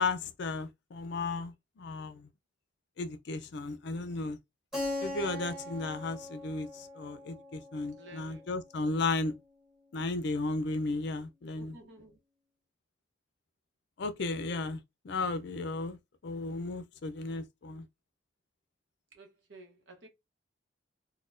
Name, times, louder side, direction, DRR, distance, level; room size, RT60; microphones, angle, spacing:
voice 1, 0.0-2.3 3.0-4.4 5.0-9.3 9.9-11.8 14.0-16.0 16.2-17.9, left 3 dB, 60° left, 0.4 m, -34 dB
Keyboard (musical), 4.7-9.3, left 1 dB, 5° right, 1.5 m, -41 dB
voice 2, 7.9-8.5 11.5-12.2 14.5-14.7 19.1-20.1, right 1 dB, 65° right, 0.9 m, -53 dB
4.1 x 2.1 x 2.5 m
head